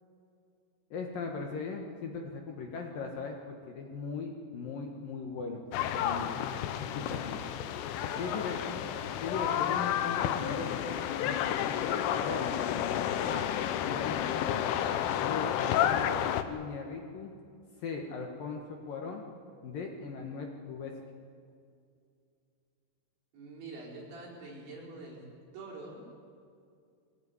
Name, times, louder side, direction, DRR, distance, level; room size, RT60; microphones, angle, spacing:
voice 1, 0.9-6.4 6.8-7.5 8.2-8.6 9.2-11.0 11.2-12.6 13.2-14.6 15.2-17.3 17.8-19.2 19.6-20.9, left 4 dB, 60° left, 2 dB, 2.6 m, -39 dB
sound 1, 5.7-16.4, left 10 dB, 85° left, 3.5 m, -31 dB
voice 2, 8.0-8.7 23.3-25.2 25.5-26.0, right 2 dB, 65° right, -4 dB, 7.1 m, -45 dB
22.5 x 17.0 x 9.7 m, 2.4 s
omnidirectional pair, 5.6 m